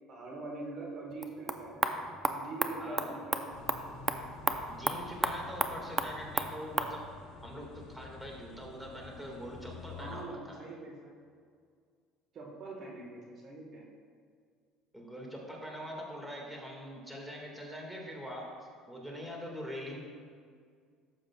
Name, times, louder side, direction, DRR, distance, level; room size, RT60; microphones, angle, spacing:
voice 1, 0.1-3.6 9.9-11.2 12.3-13.9, right 2 dB, 50° right, -1 dB, 1.5 m, -43 dB
sound 1, 1.1-7.0, right 3 dB, 20° right, 0.6 m, -34 dB
voice 2, 2.8-3.2 4.7-7.1 7.4-10.7 14.9-18.5 18.9-20.0, equal, 5° right, -2 dB, 1.9 m, -43 dB
sound 2, 3.5-10.2, left 5 dB, 70° left, 1.2 m, -49 dB
12.0 x 7.6 x 2.4 m, 2.1 s
supercardioid pair, 95°, 0 cm